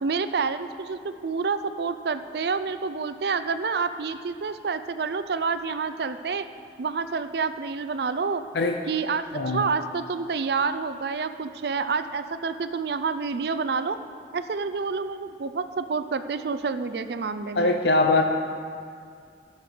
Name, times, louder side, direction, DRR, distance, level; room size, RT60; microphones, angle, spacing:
voice 1, 0.0-6.4 6.8-8.4 8.9-14.0 14.3-17.7, right 5 dB, 65° right, 11 dB, 0.4 m, -28 dB
voice 2, 17.5-18.2, left 2 dB, 70° left, 4 dB, 0.6 m, -21 dB
16.5 x 6.6 x 5.0 m, 2.3 s
head